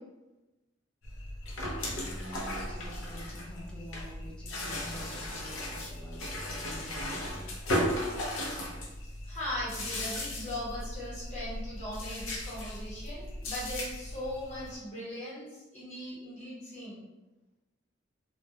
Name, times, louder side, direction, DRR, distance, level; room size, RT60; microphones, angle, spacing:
sound 1, 1.0-14.8, left 1 dB, 85° left, 0.5 m, -36 dB
voice 1, 1.6-7.5, equal, 5° left, -5 dB, 0.5 m, -47 dB
voice 2, 9.2-17.0, left 1 dB, 40° left, -8 dB, 1.0 m, -39 dB
2.1 x 2.1 x 2.7 m, 1.1 s
head